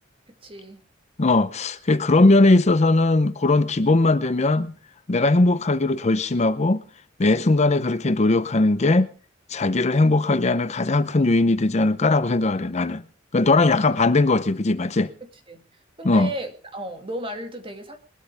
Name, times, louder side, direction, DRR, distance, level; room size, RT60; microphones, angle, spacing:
voice 1, 0.4-0.8 15.5-15.6 16.0-18.0, right 1 dB, 30° right, 2.1 m, -34 dB
voice 2, 1.2-4.7 5.1-6.8 7.2-9.1 9.5-13.0 13.3-15.1 16.0-16.3, left 2 dB, 35° left, 0.7 m, -19 dB
21.5 x 12.5 x 3.4 m
head